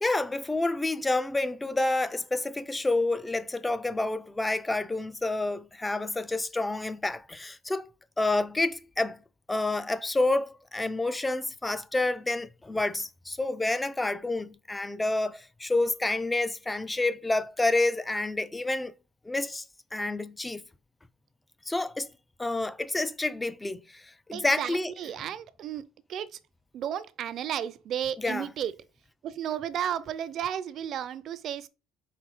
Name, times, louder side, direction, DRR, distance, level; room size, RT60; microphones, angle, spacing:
voice 1, 0.0-7.9 8.2-9.2 9.5-18.9 19.3-19.6 19.9-20.6 21.7-22.1 22.4-24.9 28.2-28.5, left 2 dB, 10° left, 0.4 m, -29 dB
voice 2, 24.3-25.8 26.1-26.3 26.7-28.7 29.2-31.7, right 10 dB, 55° right, 0.5 m, -33 dB
4.6 x 3.1 x 3.5 m
cardioid pair, 110°, 0 cm